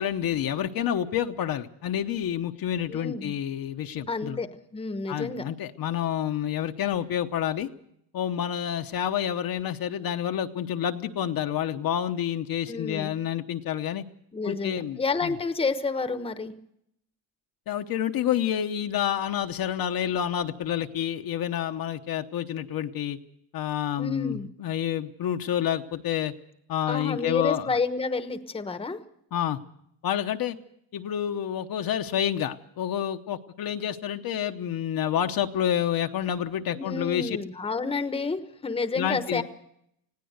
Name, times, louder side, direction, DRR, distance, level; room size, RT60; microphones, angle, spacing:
voice 1, 0.0-4.4 5.1-7.7 8.1-14.0 14.4-15.3 17.7-23.2 23.5-26.3 26.7-27.8 29.3-29.6 30.0-30.6 30.9-37.4 39.0-39.4, left 10 dB, 50° left, 6 dB, 1.0 m, -28 dB
voice 2, 2.9-3.3 4.1-4.5 4.7-5.4 12.7-13.1 14.3-16.5 24.0-24.5 26.9-29.0 36.7-39.4, left 4 dB, 10° left, 10 dB, 1.0 m, -30 dB
20.0 x 16.5 x 8.0 m, 0.75 s
cardioid pair, 150°, 45 cm